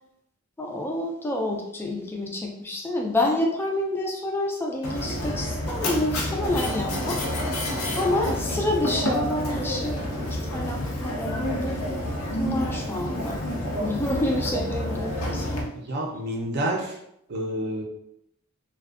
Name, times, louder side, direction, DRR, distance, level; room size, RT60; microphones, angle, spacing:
voice 1, 0.6-7.2 8.0-11.8 12.3-13.4 13.8-15.7, left 1 dB, 10° left, 0 dB, 0.3 m, -28 dB
Mechanisms, 4.8-15.6, left 1 dB, 85° left, 0.5 m, -29 dB
voice 2, 15.7-17.0 17.3-17.8, right 1 dB, 50° right, 0 dB, 0.5 m, -29 dB
2.5 x 2.2 x 2.3 m, 0.77 s
head